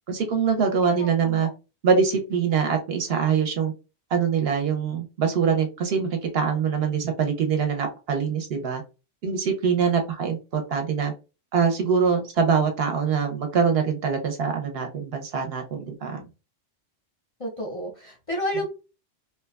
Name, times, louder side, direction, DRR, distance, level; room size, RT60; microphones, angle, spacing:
voice 1, 0.1-1.5 1.8-3.7 4.1-8.8 9.2-11.1 11.5-16.2, right 6 dB, 65° right, 4 dB, 0.7 m, -24 dB
voice 2, 0.8-1.5 17.4-18.7, equal, 40° left, -1 dB, 0.5 m, -31 dB
2.8 x 2.2 x 2.2 m, 0.31 s
omnidirectional pair, 1.2 m